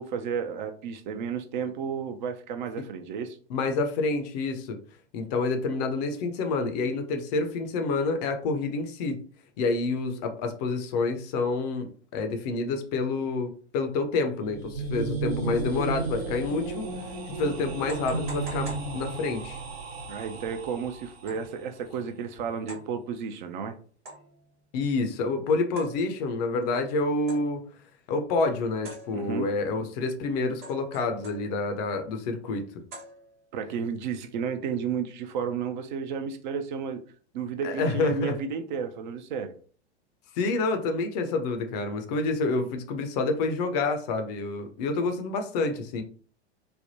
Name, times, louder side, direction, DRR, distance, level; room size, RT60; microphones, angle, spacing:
voice 1, 0.0-3.4 20.1-23.7 29.1-29.5 33.5-37.0 37.3-39.5, right 6 dB, 45° right, 0.5 m, -32 dB
voice 2, 3.5-4.8 5.1-9.2 9.6-16.9 17.3-19.6 24.7-27.7 28.1-32.6 37.6-38.3 40.4-46.0, left 3 dB, 40° left, 0.5 m, -28 dB
sound 1, 14.3-21.3, right 3 dB, 65° right, 0.9 m, -34 dB
sound 2, 17.9-19.6 21.3-21.6 22.7-23.0 24.1-24.5 25.8-26.4 27.3-27.7 28.8-29.6 30.6-31.8 32.9-33.6, right 1 dB, 30° right, 1.0 m, -45 dB
3.3 x 2.1 x 2.7 m
figure-of-eight pair, 95°, 34 cm